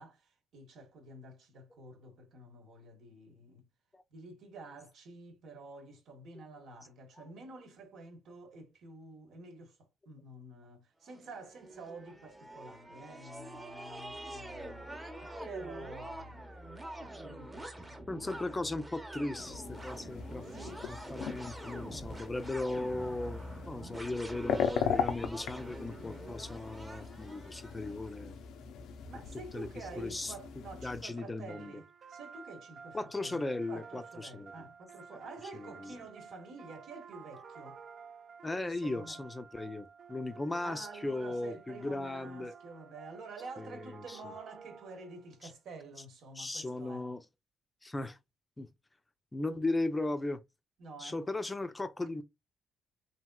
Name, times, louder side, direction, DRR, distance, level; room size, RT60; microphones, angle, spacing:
voice 1, 0.0-3.7 4.1-14.9 15.2-16.6 16.9-18.6 20.5-21.3 29.1-37.8 38.4-39.2 40.6-47.1 50.8-51.2, right 3 dB, 70° right, 1.1 m, -49 dB
sound 1, 11.1-28.2, right 1 dB, 15° right, 0.8 m, -46 dB
voice 2, 18.1-20.4 20.9-28.3 29.5-29.7 29.9-30.3 30.8-31.8 32.9-34.5 35.6-36.0 38.4-42.5 43.6-44.2 46.4-47.2 47.8-48.2 48.6-48.7 49.3-50.4 51.0-52.2, left 2 dB, 20° left, 0.5 m, -37 dB
sound 2, 19.4-31.0, left 7 dB, 85° left, 0.5 m, -39 dB
sound 3, 31.5-45.3, right 6 dB, 55° right, 0.5 m, -52 dB
2.9 x 2.8 x 2.2 m
cardioid pair, 90°, 0 cm